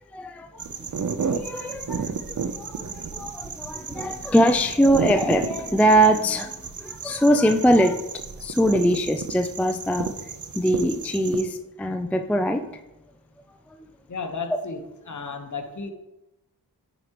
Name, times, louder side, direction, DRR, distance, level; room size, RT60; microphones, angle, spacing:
voice 1, 0.1-0.6 1.2-2.2 2.6-8.0 8.4-10.1 10.5-12.8, equal, 5° left, 7 dB, 0.4 m, -22 dB
sound 1, 0.6-11.4, right 6 dB, 45° right, 0.7 m, -32 dB
voice 2, 14.1-14.8 15.1-15.9, left 4 dB, 45° left, 5 dB, 1.2 m, -33 dB
10.0 x 5.0 x 3.0 m, 0.96 s
cardioid pair, 50°, 41 cm